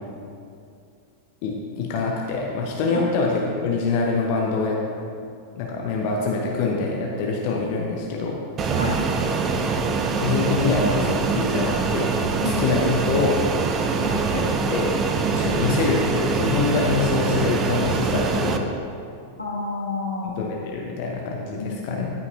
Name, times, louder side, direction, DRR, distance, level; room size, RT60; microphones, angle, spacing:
voice 1, 1.4-4.8 5.6-8.4 10.2-12.2 12.4-13.4 14.3-14.9 15.3-18.8 20.2-22.1, left 4 dB, 45° left, -1 dB, 0.8 m, -25 dB
Fixed-wing aircraft airplane, 8.6-18.6, right 4 dB, 25° right, 0.6 m, -24 dB
voice 2, 8.7-9.0 12.4-12.7 14.0-14.3 19.4-20.3 21.5-22.0, left 2 dB, 85° left, -4 dB, 1.6 m, -29 dB
13.5 x 5.6 x 2.6 m, 2.4 s
figure-of-eight pair, 90°, 0 cm